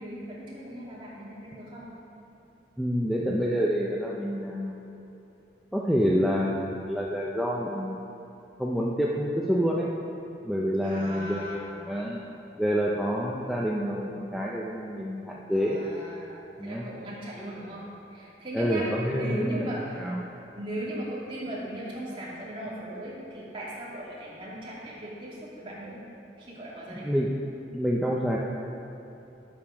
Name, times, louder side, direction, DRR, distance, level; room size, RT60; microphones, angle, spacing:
voice 1, 0.0-1.9 10.8-11.6 15.5-20.1 20.5-26.0 26.4-27.1, right 1 dB, 30° right, -7 dB, 2.6 m, -38 dB
voice 2, 2.8-4.9 5.7-8.1 8.6-9.9 10.4-12.2 12.6-15.8 16.6-16.8 18.5-19.7 20.0-20.2 26.9-27.4 27.7-28.4, equal, ahead, -4 dB, 0.6 m, -28 dB
9.6 x 8.7 x 5.9 m, 3.0 s
head